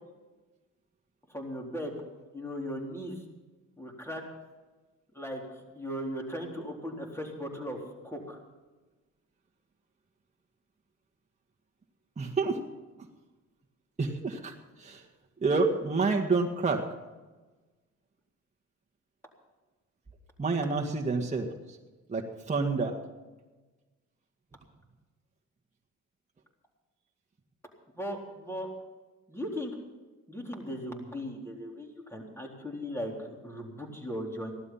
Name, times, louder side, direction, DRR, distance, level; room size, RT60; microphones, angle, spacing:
voice 1, 1.3-2.0 2.3-3.1 3.8-4.2 5.1-5.4 5.7-7.8 8.0-8.4 28.0-28.7 29.3-29.7 30.3-34.5, equal, 10° left, 0 dB, 3.9 m, -37 dB
voice 2, 12.2-12.6 14.0-15.0 15.4-16.8 20.4-21.8 22.1-23.0, right 3 dB, 25° right, 0 dB, 1.8 m, -28 dB
16.5 x 12.0 x 5.7 m, 1.2 s
cardioid pair, 90°, 30 cm